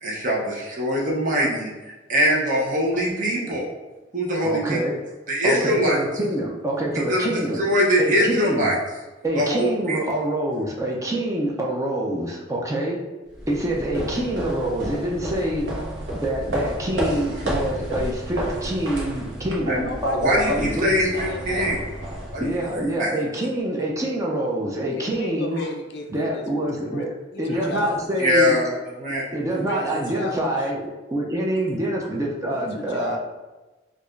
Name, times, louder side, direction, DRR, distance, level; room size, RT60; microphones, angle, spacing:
voice 1, 0.0-3.6 4.1-4.8 5.3-6.0 7.1-8.7 9.3-10.0 19.7-19.8 20.2-21.8 22.3-23.1 25.5-25.7 27.5-27.6 28.2-29.3 29.5-30.0, equal, 40° right, -3 dB, 0.7 m, -23 dB
voice 2, 4.4-5.0 5.4-7.6 8.0-8.7 9.2-13.0 13.5-15.7 16.2-21.1 22.4-25.6 26.1-28.5 29.3-30.8 31.1-33.2, right 1 dB, 15° right, -2 dB, 0.4 m, -26 dB
sound 1, 13.3-23.0, right 1 dB, 80° right, 0.9 m, -31 dB
voice 3, 19.6-21.7 24.9-27.0 27.3-28.0 29.5-30.4 32.5-33.2, left 2 dB, 60° left, 4 dB, 0.4 m, -33 dB
4.6 x 2.4 x 2.4 m, 1.1 s
head